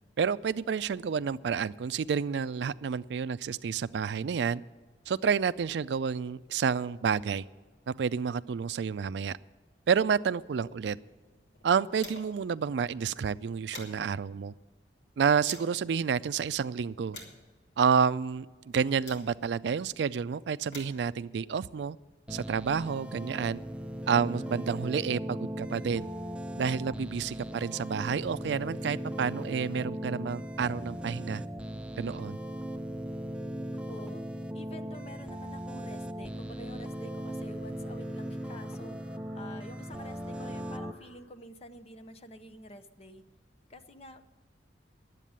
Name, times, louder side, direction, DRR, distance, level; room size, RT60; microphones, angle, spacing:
voice 1, 0.2-4.6 5.1-7.4 7.9-9.3 9.9-11.0 11.6-14.5 15.2-17.2 17.8-18.5 18.7-22.0 22.3-23.6 24.1-26.1 26.6-31.4 32.0-32.4, right 6 dB, 70° right, 15 dB, 0.4 m, -29 dB
sound 1, 10.7-12.5 12.8-12.9 13.3-15.8 16.4-19.7 20.4-22.6, left 2 dB, 90° left, 2.8 m, -51 dB
sound 2, 22.3-40.9, equal, 5° right, 0.5 m, -38 dB
voice 2, 33.9-34.3 34.5-39.0 39.3-43.2 43.7-44.2, left 1 dB, 35° left, 10 dB, 0.7 m, -48 dB
sound 3, 35.3-41.2, equal, 70° left, 4.6 m, -62 dB
11.0 x 8.3 x 8.7 m, 1.4 s
head